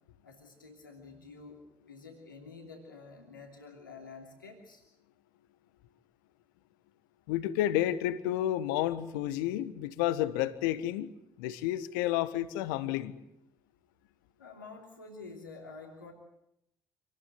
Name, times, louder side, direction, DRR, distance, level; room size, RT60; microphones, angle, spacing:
voice 1, 0.2-4.8 14.4-16.1, left 4 dB, 85° left, 3.0 m, -49 dB
voice 2, 7.3-11.1 11.4-13.1, left 13 dB, 70° left, 1.4 m, -30 dB
27.0 x 19.0 x 9.7 m
figure-of-eight pair, 45°, 11 cm